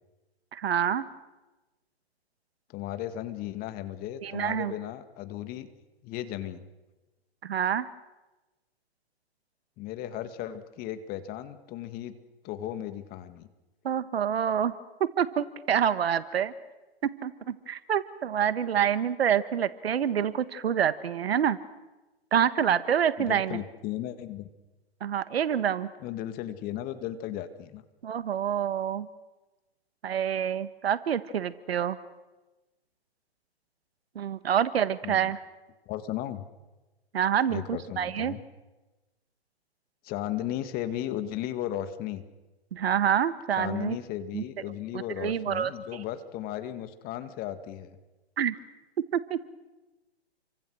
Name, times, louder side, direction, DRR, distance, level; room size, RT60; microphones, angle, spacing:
voice 1, 0.5-1.1 4.2-4.7 7.4-7.9 13.8-14.7 15.0-16.5 17.0-21.6 22.3-23.6 25.0-25.9 28.0-29.1 30.0-32.0 34.2-35.4 37.1-38.3 42.7-44.0 44.3-44.4 44.9-45.7 48.4-48.5 49.1-49.5, right 9 dB, 65° right, 14 dB, 1.7 m, -27 dB
voice 2, 2.7-5.7 6.0-6.7 9.8-12.2 12.4-13.5 23.2-24.5 26.0-27.8 35.0-35.3 35.9-36.5 37.5-38.4 40.0-42.2 43.6-48.0, left 12 dB, 25° left, 10 dB, 2.0 m, -35 dB
30.0 x 24.5 x 6.5 m, 1.1 s
hypercardioid pair, 130°, 33 cm